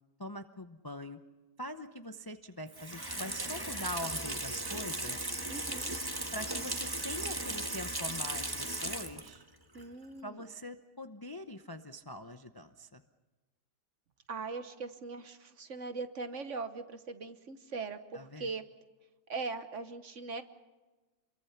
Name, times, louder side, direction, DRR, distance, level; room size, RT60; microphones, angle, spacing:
voice 1, 0.2-1.2 1.6-5.4 6.3-9.4 10.2-13.0 18.1-18.5, left 1 dB, 25° left, 7 dB, 0.5 m, -43 dB
Water tap faucet / Sink (filling or washing), 2.7-9.4 9.8-9.9, right 1 dB, 15° right, 1.5 m, -37 dB
voice 2, 5.5-5.9 9.7-10.5 14.3-18.6 19.3-20.4, right 4 dB, 50° right, 10 dB, 1.4 m, -40 dB
28.0 x 22.5 x 5.8 m, 1.2 s
omnidirectional pair, 1.8 m